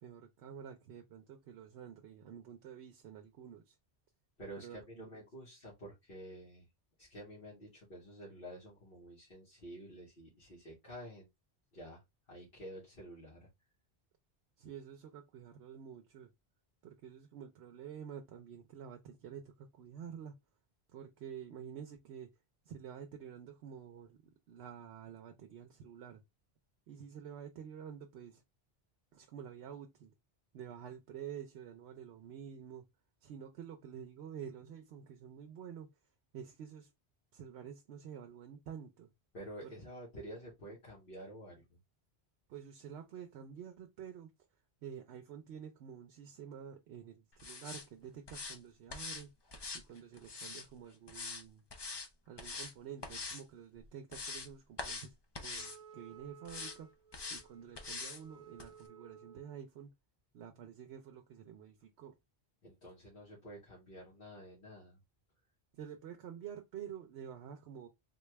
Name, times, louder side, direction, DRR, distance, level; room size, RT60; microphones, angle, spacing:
voice 1, 0.0-3.8 4.6-5.2 14.6-16.3 16.8-20.3 20.9-22.3 22.7-24.2 24.5-26.2 26.9-28.4 29.1-30.1 30.5-32.8 33.2-35.9 36.3-36.9 37.3-39.1 39.6-39.7 42.5-44.3 44.8-49.3 49.7-51.6 52.3-56.9 57.3-59.9 60.3-62.2 65.7-67.9, right 8 dB, 90° right, 0.9 m, -49 dB
voice 2, 4.4-6.7 7.0-11.3 11.7-13.5 39.3-41.8 62.6-65.0, equal, 60° left, 1.6 m, -50 dB
sound 1, 47.4-47.8 48.3-48.6 48.9-49.2 49.5-50.7 51.1-51.4 51.7-52.1 52.4-52.7 53.0-53.4 53.8-54.5 54.8-55.1 55.3-55.8 56.4-56.8 57.1-57.4 57.8-58.2 58.6-58.7, left 4 dB, 35° left, 0.5 m, -43 dB
Wind instrument woodwind instrument, 55.6-59.7, right 7 dB, 60° right, 0.7 m, -57 dB
3.9 x 2.3 x 3.1 m
omnidirectional pair, 1.1 m